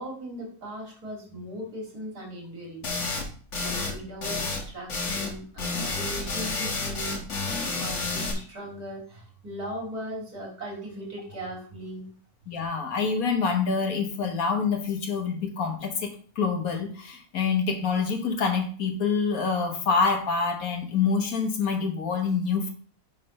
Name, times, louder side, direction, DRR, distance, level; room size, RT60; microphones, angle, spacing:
voice 1, 0.0-2.9 3.6-12.1, right 1 dB, 90° right, -3 dB, 3.6 m, -39 dB
sound 1, 2.8-3.3 3.5-3.9 4.2-4.6 4.9-5.3 5.6-8.3, left 3 dB, 50° left, 1.6 m, -30 dB
voice 2, 12.5-22.7, left 5 dB, 65° left, 4 dB, 1.6 m, -26 dB
7.4 x 3.8 x 5.3 m, 0.44 s
omnidirectional pair, 1.6 m